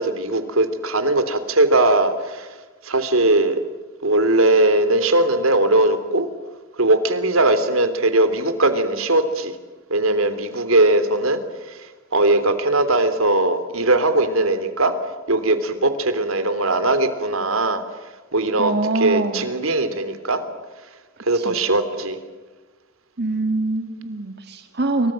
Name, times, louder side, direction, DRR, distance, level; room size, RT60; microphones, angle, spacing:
voice 1, 0.0-2.5 2.8-3.6 4.0-6.3 6.8-9.5 9.9-11.4 11.6-14.9 15.3-17.8 18.3-18.7 19.0-20.4 21.2-22.2, right 2 dB, 90° right, 11 dB, 3.3 m, -19 dB
voice 2, 18.6-19.5 21.3-21.6 23.2-25.1, right 2 dB, 50° right, 6 dB, 2.0 m, -24 dB
29.0 x 25.0 x 7.7 m, 1.2 s
head